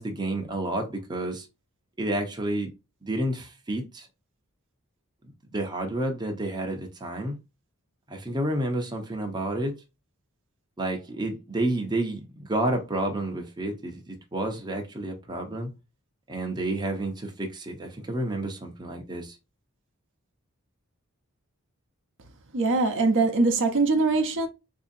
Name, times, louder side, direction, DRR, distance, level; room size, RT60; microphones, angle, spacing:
voice 1, 0.0-1.5 2.0-2.7 3.0-4.1 5.5-7.4 8.1-9.7 10.8-15.7 16.3-19.4, right 1 dB, 20° right, 0.7 m, -30 dB
voice 2, 22.5-24.5, right 3 dB, 60° right, 0.7 m, -22 dB
4.2 x 2.7 x 2.5 m
head